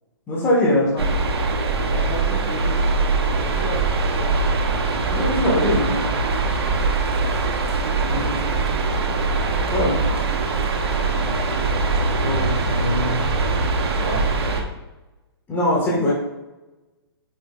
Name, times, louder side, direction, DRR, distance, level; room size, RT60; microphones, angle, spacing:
voice 1, 0.3-0.9 5.1-6.1 8.1-8.3 9.6-10.0 12.2-13.2 14.0-14.3 15.5-16.1, left 1 dB, 15° left, -6 dB, 2.1 m, -22 dB
sound 1, 1.0-14.6, right 3 dB, 70° right, 1.4 m, -22 dB
voice 2, 1.9-2.7 3.2-4.4 8.0-8.5 11.1-11.8, left 2 dB, 45° left, -2 dB, 2.5 m, -35 dB
9.0 x 6.9 x 2.6 m, 1.1 s
hypercardioid pair, 140°, 14 cm